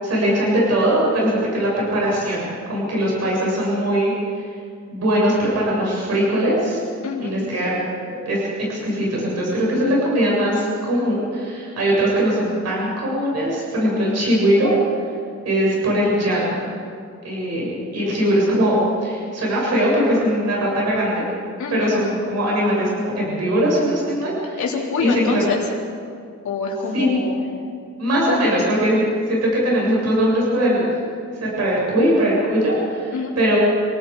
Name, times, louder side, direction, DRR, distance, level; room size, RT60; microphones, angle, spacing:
voice 1, 0.0-4.1 4.9-6.8 7.2-7.8 8.1-14.7 15.4-16.6 17.2-21.3 21.7-24.6 25.0-25.5 26.9-27.1 28.0-30.9 31.4-33.6, equal, 60° right, -5 dB, 7.7 m, -20 dB
voice 2, 7.0-7.3 21.6-21.9 24.6-25.6 26.4-27.4 28.3-28.5 33.1-33.3, left 5 dB, 80° left, -3 dB, 4.0 m, -26 dB
29.0 x 18.5 x 5.1 m, 2.3 s
wide cardioid pair, 175°, 29 cm